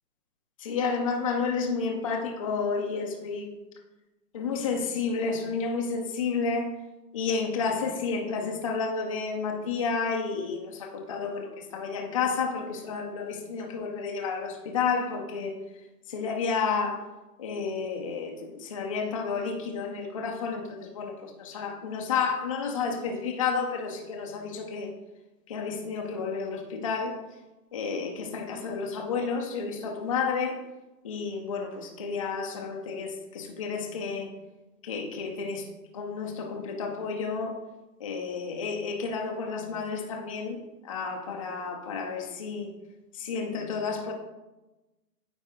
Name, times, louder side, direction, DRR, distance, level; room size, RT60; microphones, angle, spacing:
voice 1, 0.6-3.5 4.3-6.7 7.1-15.6 16.1-17.1 17.4-24.9 25.5-27.2 27.7-30.6 31.0-34.3 34.8-35.7 35.9-37.6 38.0-42.7 43.1-44.1, left 5 dB, 20° left, 1 dB, 0.4 m, -31 dB
9.0 x 4.2 x 3.6 m, 1.0 s
hypercardioid pair, 145°, 50 cm